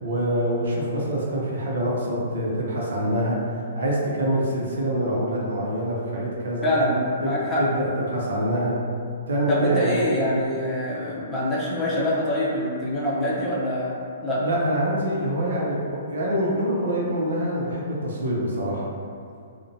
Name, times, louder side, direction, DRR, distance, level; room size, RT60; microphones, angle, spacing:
voice 1, 0.0-3.4 3.7-6.7 7.2-7.3 7.6-8.7 9.3-10.1 14.4-18.9, right 1 dB, 70° right, -4 dB, 0.6 m, -25 dB
voice 2, 6.6-7.6 9.5-14.4, left 1 dB, 15° left, -8 dB, 0.6 m, -25 dB
2.5 x 2.1 x 2.6 m, 2.3 s
hypercardioid pair, 125°, 0 cm